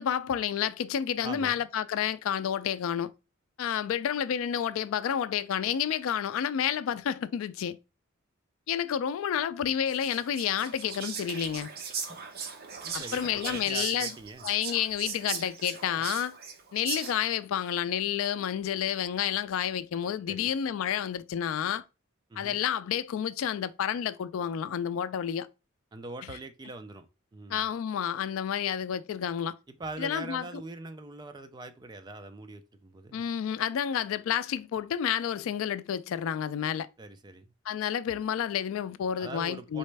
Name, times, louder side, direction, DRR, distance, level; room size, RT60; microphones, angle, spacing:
voice 1, 0.0-3.1 3.6-7.8 8.7-11.7 12.9-14.1 14.4-16.4 16.7-21.8 22.4-25.5 27.5-29.6 30.0-30.4 33.1-36.9 37.7-39.8, left 9 dB, 75° left, 0.3 m, -30 dB
voice 2, 1.2-1.6 13.0-14.5 20.3-20.5 22.3-22.6 25.9-27.1 27.3-27.6 29.7-33.2 37.0-37.5 39.2-39.8, right 2 dB, 20° right, 0.4 m, -42 dB
Whispering, 9.9-17.4, right 6 dB, 45° right, 0.7 m, -38 dB
4.1 x 3.2 x 3.2 m
head